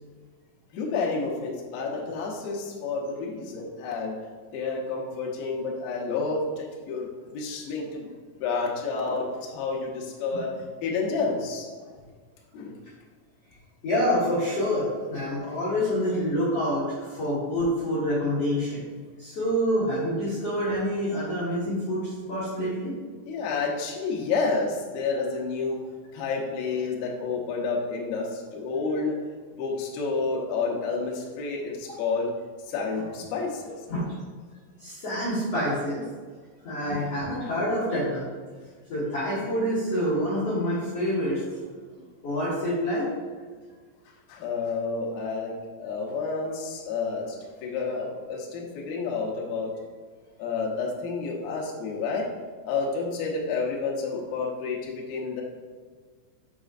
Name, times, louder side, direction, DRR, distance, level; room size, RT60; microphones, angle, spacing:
voice 1, 0.7-4.2 4.5-8.1 8.4-11.7 12.5-12.8 23.3-25.9 26.1-29.2 29.5-32.3 32.7-33.8 44.3-49.7 50.4-52.3 52.6-55.4, left 4 dB, 85° left, -3 dB, 2.1 m, -30 dB
voice 2, 13.8-18.8 19.2-22.9 33.9-34.0 34.8-36.0 36.6-38.3 38.9-41.4 42.2-43.1, equal, 60° left, -11 dB, 1.5 m, -27 dB
6.8 x 6.2 x 2.5 m, 1.5 s
omnidirectional pair, 5.8 m